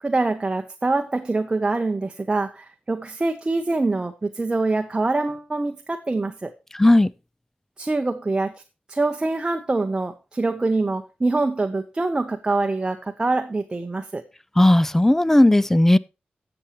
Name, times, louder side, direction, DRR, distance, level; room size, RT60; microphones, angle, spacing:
voice 1, 0.0-6.5 7.8-8.5 8.9-14.2, right 3 dB, 25° right, 0.8 m, -24 dB
voice 2, 6.7-7.1 14.6-16.0, left 1 dB, 10° left, 0.4 m, -15 dB
17.5 x 7.0 x 3.0 m
wide cardioid pair, 105°, 3 cm